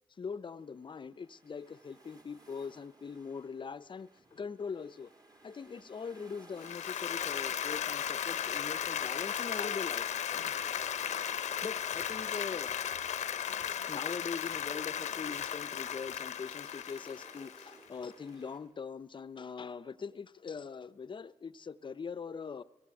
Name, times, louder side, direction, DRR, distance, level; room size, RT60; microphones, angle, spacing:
voice 1, 0.2-5.1 5.4-10.6 11.1-11.3 11.6-12.7 13.9-22.6, left 5 dB, 45° left, 0.7 m, -42 dB
sound 1, 0.6-18.6, right 2 dB, 35° right, 3.2 m, -58 dB
Applause, 6.6-17.9, left 9 dB, 80° left, 0.8 m, -36 dB
17.5 x 16.5 x 9.0 m
cardioid pair, 65°, 12 cm